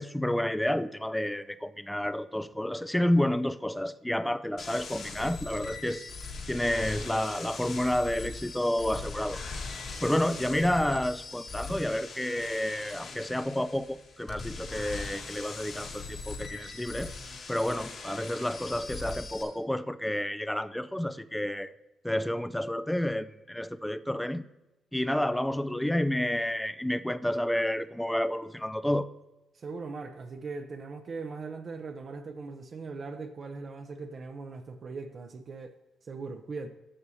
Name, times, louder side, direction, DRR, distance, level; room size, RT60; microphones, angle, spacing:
voice 1, 0.0-6.0 6.5-9.4 10.0-17.1 17.5-21.7 22.0-24.5 24.9-29.1, left 1 dB, 5° left, 0.4 m, -30 dB
sound 1, 4.6-19.4, left 4 dB, 60° left, 1.8 m, -41 dB
voice 2, 29.5-36.7, right 4 dB, 45° right, 0.6 m, -40 dB
12.5 x 6.8 x 2.8 m
cardioid pair, 90°, 0 cm